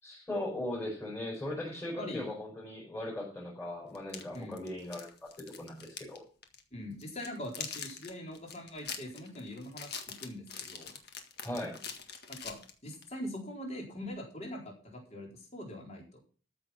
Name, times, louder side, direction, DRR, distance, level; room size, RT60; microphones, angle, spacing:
voice 1, 0.0-6.2 11.4-11.8, left 1 dB, 10° left, -5 dB, 5.0 m, -38 dB
voice 2, 2.0-2.3 4.3-4.5 6.7-10.9 12.3-16.0, left 1 dB, 35° left, 0 dB, 4.1 m, -42 dB
sound 1, 3.9-6.2 6.4-6.6 7.0-13.1, left 7 dB, 50° left, 1.8 m, -43 dB
14.0 x 6.6 x 5.8 m, 0.38 s
head